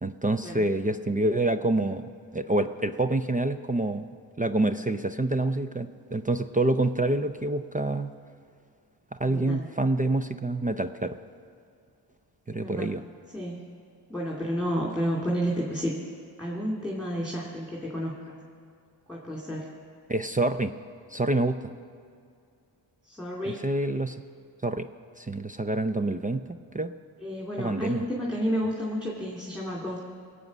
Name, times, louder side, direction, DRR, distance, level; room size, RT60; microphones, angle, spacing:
voice 1, 0.0-2.0 2.3-4.1 4.4-8.1 9.2-11.2 12.5-13.0 20.1-20.7 21.1-21.6 23.5-24.2 24.6-24.9 25.2-26.5 26.7-26.9 27.6-28.0, right 2 dB, 20° right, 9 dB, 0.5 m, -27 dB
voice 2, 9.2-9.7 12.5-13.0 13.3-13.6 14.1-15.9 16.4-18.4 19.1-19.7 23.0-23.6 27.2-30.0, equal, ahead, -3 dB, 2.6 m, -31 dB
20.0 x 8.2 x 6.1 m, 2.3 s
cardioid pair, 60°, 46 cm